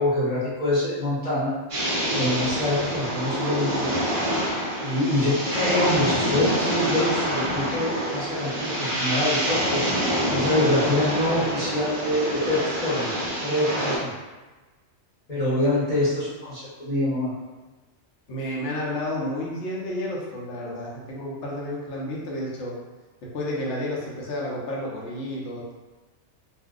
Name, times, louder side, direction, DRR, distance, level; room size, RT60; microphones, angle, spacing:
voice 1, 0.0-1.5 2.0-3.9 4.8-9.8 10.3-13.1 13.4-14.1 15.3-17.3, left 1 dB, 35° left, -11 dB, 0.9 m, -25 dB
sound 1, 1.7-14.0, equal, 40° right, 0.5 m, -26 dB
voice 2, 18.3-22.8 23.2-25.7, left 1 dB, 70° left, -4 dB, 1.0 m, -31 dB
2.6 x 2.1 x 3.6 m, 1.2 s
omnidirectional pair, 1.3 m